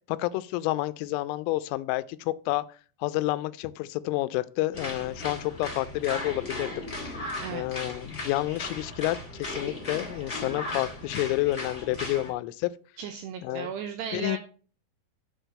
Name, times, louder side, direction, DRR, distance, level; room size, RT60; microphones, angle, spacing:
voice 1, 0.1-2.6 3.0-7.2 7.5-12.8 13.4-13.7 14.1-14.4, left 17 dB, 85° left, 3.0 m, -29 dB
sound 1, 4.7-12.3, left 2 dB, 35° left, 1.0 m, -37 dB
voice 2, 13.0-14.4, right 8 dB, 80° right, 2.5 m, -35 dB
6.4 x 6.3 x 6.6 m
omnidirectional pair, 5.7 m